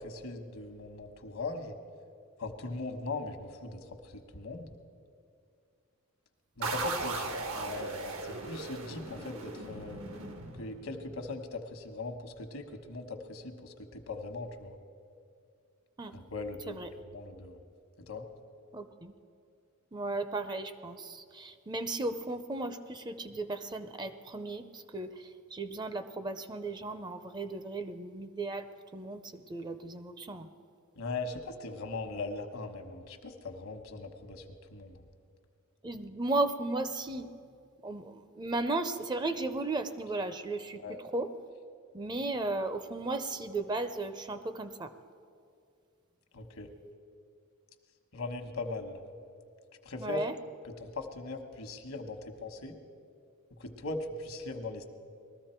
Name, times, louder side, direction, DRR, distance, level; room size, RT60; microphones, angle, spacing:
voice 1, 0.0-1.8 2.4-3.8 4.1-4.7 6.6-10.0 10.6-14.8 16.1-16.8 17.1-17.6 18.1-18.3 31.0-34.4 34.7-35.0 40.8-41.0 46.3-46.7 48.1-49.0 49.8-50.2 50.8-52.8 53.6-54.9, left 3 dB, 75° left, 6 dB, 1.2 m, -40 dB
sound 1, 6.6-11.1, right 3 dB, 80° right, 1.3 m, -38 dB
voice 2, 18.7-19.1 19.9-28.7 28.9-30.5 35.8-37.3 37.8-41.3 41.9-44.9 50.0-50.4, right 2 dB, 20° right, 10 dB, 0.5 m, -35 dB
20.5 x 13.5 x 4.4 m, 2.4 s
head